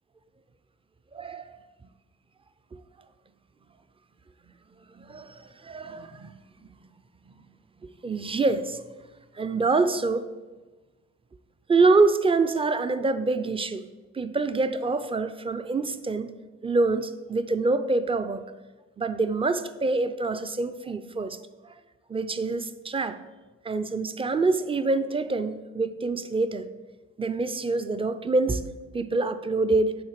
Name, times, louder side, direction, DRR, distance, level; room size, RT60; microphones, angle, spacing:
voice 1, 1.1-1.5 4.9-6.3 8.0-8.8 9.4-10.2 11.7-13.8 14.1-16.3 16.6-18.4 19.0-21.4 21.6-21.7 22.1-23.2 23.6-26.7 27.2-28.6 28.9-30.0, right 3 dB, 20° right, 0.5 m, -25 dB
8.7 x 3.8 x 6.6 m
cardioid pair, 90°, 30 cm